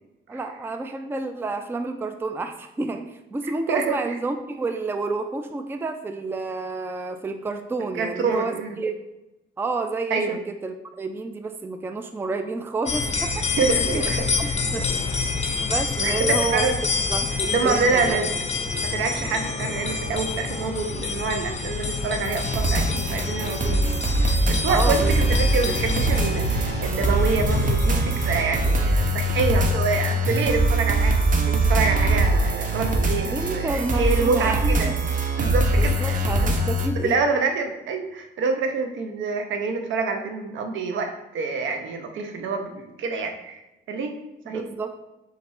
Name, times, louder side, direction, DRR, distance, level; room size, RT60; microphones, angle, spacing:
voice 1, 0.3-9.0 9.6-14.0 14.4-14.9 15.6-16.7 17.1-18.2 24.7-25.3 25.7-25.9 33.2-34.9 35.7-37.2 44.5-44.9, right 3 dB, 10° right, 7 dB, 0.3 m, -30 dB
voice 2, 7.9-8.8 10.1-10.4 13.6-14.5 16.0-16.7 17.5-18.3 18.8-23.9 24.3-34.9 35.4-36.5 37.0-43.6 43.9-44.2 44.5-44.6, right 4 dB, 75° right, 5 dB, 0.7 m, -26 dB
sound 1, 12.9-29.3, left 4 dB, 35° left, 0.6 m, -27 dB
sound 2, 22.2-36.9, right 2 dB, 40° right, 0.7 m, -22 dB
4.0 x 2.5 x 4.7 m, 0.94 s
cardioid pair, 90°, 20 cm